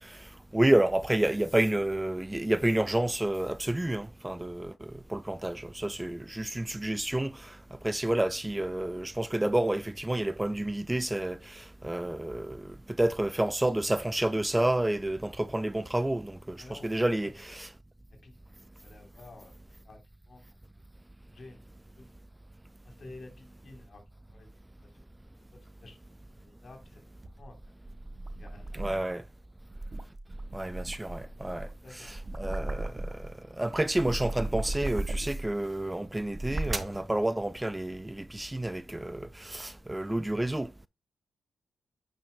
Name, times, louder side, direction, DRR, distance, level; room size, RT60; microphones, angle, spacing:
voice 1, 0.0-17.7 28.7-29.2 30.5-31.7 31.9-33.3 33.6-40.9, right 1 dB, 15° right, 0.5 m, -30 dB
voice 2, 16.6-17.2 18.2-19.6 19.8-20.0 20.3-20.9 21.3-21.6 22.0-22.1 22.8-24.0 24.3-25.0 25.5-26.0 26.4-27.0 27.4-27.7 28.4-29.0 31.8-32.5, left 2 dB, 50° left, 3.8 m, -52 dB
sound 1, 27.2-29.1 29.6-33.3 33.7-35.6 36.2-37.0, right 2 dB, 35° right, 1.5 m, -36 dB
10.5 x 9.0 x 2.2 m
supercardioid pair, 50°, 0 cm